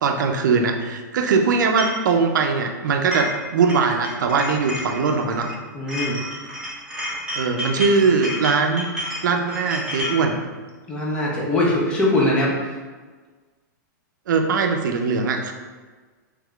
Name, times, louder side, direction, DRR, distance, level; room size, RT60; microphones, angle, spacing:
voice 1, 0.0-5.5 7.3-8.9 9.2-10.4 14.3-15.5, right 4 dB, 75° right, 4 dB, 0.4 m, -21 dB
sound 1, 1.8-2.0 2.9-3.4 3.7-5.6 5.9-10.2, equal, 5° right, 0.9 m, -30 dB
voice 2, 5.7-6.2 10.9-12.5, left 1 dB, 10° left, -4 dB, 0.4 m, -21 dB
3.5 x 3.2 x 2.3 m, 1.4 s
supercardioid pair, 170°, 10 cm